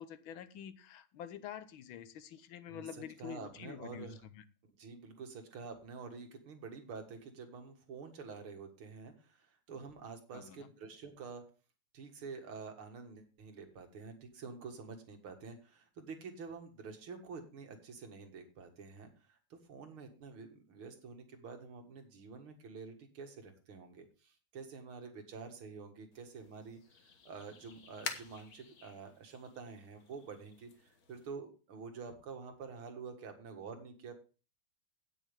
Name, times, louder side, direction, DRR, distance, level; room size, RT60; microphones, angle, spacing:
voice 1, 0.0-4.4 10.3-10.7, left 9 dB, 75° left, 1.6 m, -47 dB
voice 2, 3.2-4.2 4.8-11.4 11.9-34.1, right 5 dB, 85° right, 2.6 m, -48 dB
sound 1, 26.1-31.3, left 5 dB, 50° left, 1.6 m, -49 dB
17.0 x 6.1 x 3.4 m
omnidirectional pair, 2.3 m